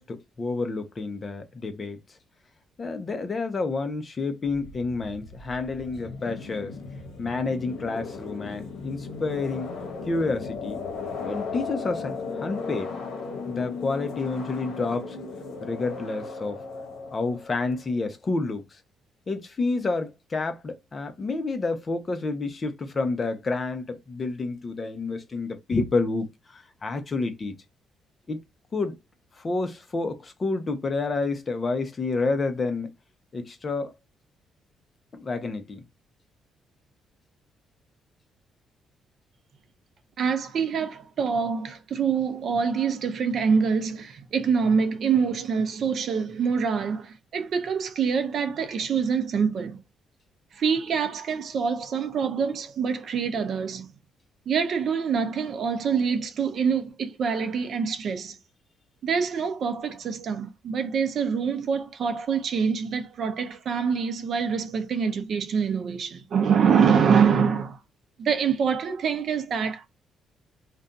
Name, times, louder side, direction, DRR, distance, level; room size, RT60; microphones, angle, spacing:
voice 1, 0.0-2.0 2.8-6.7 7.2-9.7 10.1-10.8 11.2-12.9 13.5-15.2 15.6-16.6 17.1-18.8 19.3-27.5 28.3-28.4 28.7-29.0 29.4-32.9 33.3-33.9 35.1-35.8, left 3 dB, 35° left, 0.7 m, -29 dB
sound 1, 4.5-17.9, left 4 dB, 80° left, 0.9 m, -36 dB
voice 2, 40.2-49.8 50.5-53.9 54.5-58.4 59.0-67.8 68.2-69.9, right 6 dB, 60° right, 0.6 m, -25 dB
2.5 x 2.2 x 3.8 m
cardioid pair, 90°, 0 cm